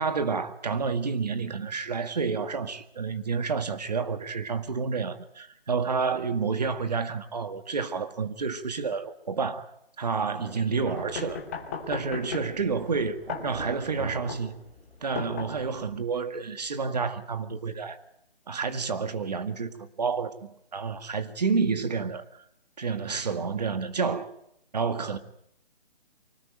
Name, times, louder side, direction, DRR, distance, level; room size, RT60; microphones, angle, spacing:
voice 1, 0.0-9.7 10.0-11.4 11.9-14.6 15.0-18.0 18.5-22.3 22.8-24.3 24.7-25.2, right 5 dB, 45° right, 1.9 m, -29 dB
Thunder, 10.3-15.1, right 3 dB, 80° right, 4.9 m, -44 dB
sound 1, 11.0-16.0, left 5 dB, 15° left, 1.7 m, -38 dB
24.5 x 19.0 x 9.0 m
hypercardioid pair, 175°, 30 cm